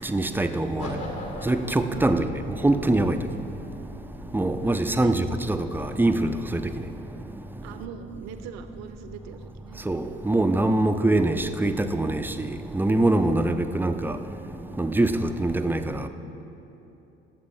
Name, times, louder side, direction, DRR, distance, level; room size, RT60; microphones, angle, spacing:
voice 1, 0.0-1.0 1.5-2.3 2.6-3.2 4.3-6.6 9.9-12.3 12.7-14.2 14.8-16.1, right 2 dB, 5° right, 0.5 m, -23 dB
sound 1, 0.8-6.9, left 2 dB, 60° left, 2.0 m, -41 dB
voice 2, 1.9-2.4 4.6-5.2 7.6-9.8 13.2-13.5, right 7 dB, 55° right, 0.8 m, -42 dB
20.0 x 7.5 x 3.2 m
figure-of-eight pair, 50°, 31 cm